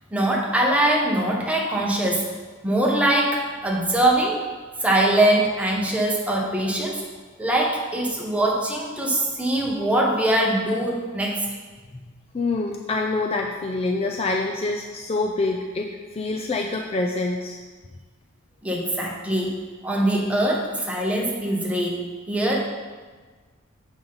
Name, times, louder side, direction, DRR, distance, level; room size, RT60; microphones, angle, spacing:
voice 1, 0.1-2.2 2.6-4.4 4.8-7.0 7.4-11.4 18.6-19.6 19.8-22.6, right 1 dB, 5° right, -3 dB, 1.0 m, -22 dB
voice 2, 12.3-17.6, left 3 dB, 30° left, 1 dB, 0.4 m, -26 dB
7.3 x 5.4 x 3.9 m, 1.4 s
head